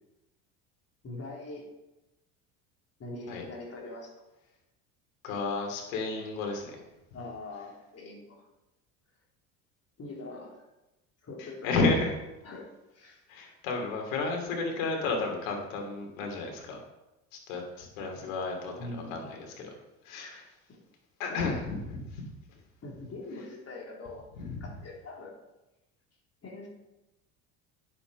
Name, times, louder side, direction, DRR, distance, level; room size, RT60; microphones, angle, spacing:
voice 1, 1.0-1.6 3.0-4.1 7.1-8.5 10.0-10.6 11.2-11.7 12.4-13.2 18.2-18.3 18.8-19.3 21.3-21.5 22.8-24.3 24.6-25.3 26.4-26.7, left 2 dB, 35° left, -2 dB, 3.6 m, -42 dB
voice 2, 5.2-6.7 11.4-12.1 13.3-16.8 17.5-19.7 20.0-20.4 21.2-22.2 24.4-24.7, left 3 dB, 80° left, 2 dB, 2.8 m, -32 dB
9.3 x 7.3 x 5.3 m, 0.99 s
hypercardioid pair, 75°, 40 cm